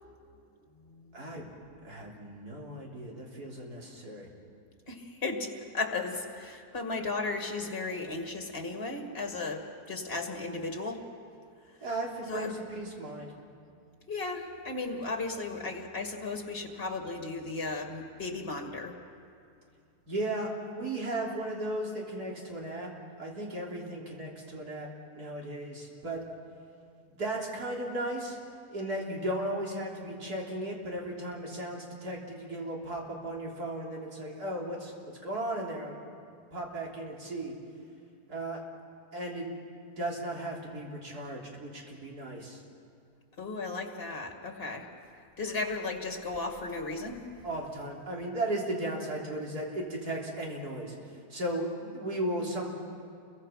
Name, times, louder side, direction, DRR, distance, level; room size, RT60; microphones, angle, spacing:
voice 1, 1.1-1.5 1.8-4.3 11.8-13.3 20.1-22.9 23.2-24.9 25.1-26.2 27.2-28.4 28.7-34.9 35.2-36.0 36.5-37.5 38.3-38.6 39.1-39.5 40.0-42.6 47.4-51.0 51.3-52.7, right 1 dB, 85° right, -2 dB, 3.9 m, -35 dB
voice 2, 4.9-11.0 12.3-12.5 14.1-19.0 43.4-44.9 45.4-47.2, left 3 dB, 40° left, 3 dB, 2.5 m, -35 dB
29.5 x 23.0 x 5.8 m, 2.4 s
omnidirectional pair, 1.6 m